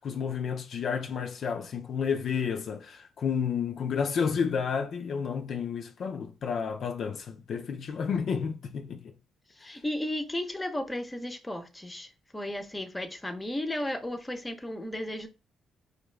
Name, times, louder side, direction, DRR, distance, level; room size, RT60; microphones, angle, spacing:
voice 1, 0.0-9.1, left 6 dB, 60° left, 0.4 m, -31 dB
voice 2, 9.6-15.3, left 1 dB, 10° left, 0.6 m, -34 dB
4.3 x 2.4 x 3.2 m
cardioid pair, 90°, 0 cm